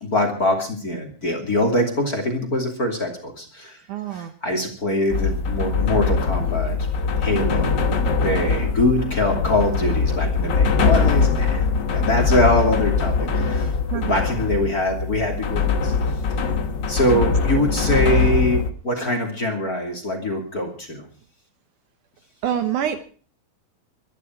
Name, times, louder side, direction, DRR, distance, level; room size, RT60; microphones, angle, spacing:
voice 1, 0.0-3.8 4.1-6.8 7.2-7.8 8.1-15.9 16.9-21.1, left 1 dB, 25° left, 4 dB, 2.8 m, -23 dB
voice 2, 3.9-4.3 7.4-7.5 13.9-14.2 17.1-17.4 22.4-23.0, right 10 dB, 65° right, 9 dB, 2.3 m, -26 dB
sound 1, 5.1-18.7, left 5 dB, 80° left, 0.9 m, -22 dB
23.5 x 11.0 x 4.6 m, 0.42 s
omnidirectional pair, 4.3 m